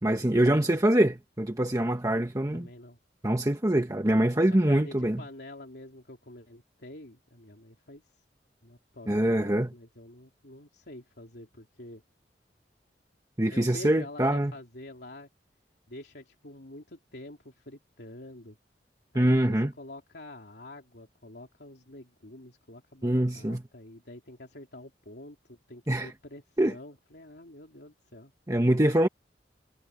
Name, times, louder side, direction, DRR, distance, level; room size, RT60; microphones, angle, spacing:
voice 1, 0.0-2.7 3.2-5.2 9.1-9.7 13.4-14.5 19.1-19.7 23.0-23.6 25.9-26.1 26.6-26.7 28.5-29.1, right 1 dB, 20° right, 1.2 m, -24 dB
voice 2, 2.5-3.0 4.5-8.0 8.6-12.0 13.5-15.3 15.9-18.6 19.1-28.3, left 1 dB, 70° left, 3.4 m, -47 dB
head